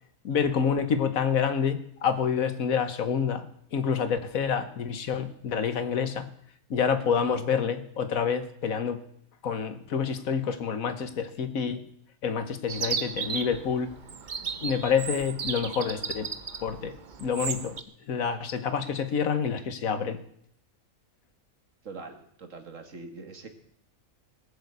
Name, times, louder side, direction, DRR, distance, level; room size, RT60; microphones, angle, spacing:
voice 1, 0.2-3.5 3.7-6.3 6.7-9.0 9.4-11.8 12.2-13.9 14.6-16.3 16.6-17.8 18.1-20.2, left 6 dB, 80° left, 11 dB, 1.6 m, -28 dB
Chirp tweet, 12.7-17.8, right 6 dB, 40° right, 0.8 m, -35 dB
voice 2, 21.8-23.5, right 3 dB, 65° right, 7 dB, 2.1 m, -43 dB
18.5 x 7.1 x 8.0 m, 0.71 s
omnidirectional pair, 1.4 m